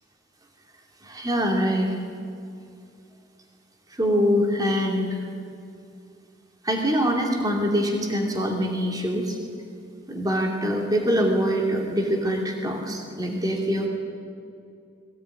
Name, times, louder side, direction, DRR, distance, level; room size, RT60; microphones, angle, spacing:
voice 1, 1.0-2.0 3.9-5.2 6.6-9.4 10.1-13.9, equal, 20° right, 1 dB, 2.7 m, -24 dB
22.0 x 17.0 x 9.8 m, 2.4 s
head